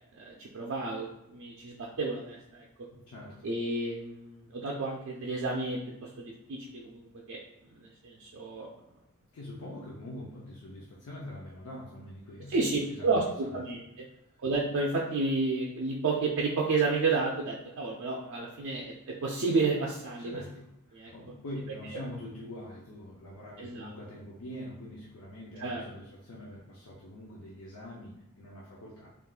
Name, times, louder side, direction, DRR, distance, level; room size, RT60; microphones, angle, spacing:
voice 1, 0.1-2.6 3.4-7.4 7.8-8.7 12.5-14.1 14.4-20.4 20.9-21.1 23.6-23.9 25.6-25.8, right 3 dB, 60° right, -2 dB, 0.4 m, -31 dB
voice 2, 2.9-3.5 9.3-13.8 14.1-14.2 20.2-29.1, left 1 dB, 80° left, -4 dB, 0.5 m, -44 dB
3.6 x 2.3 x 2.3 m, 0.84 s
head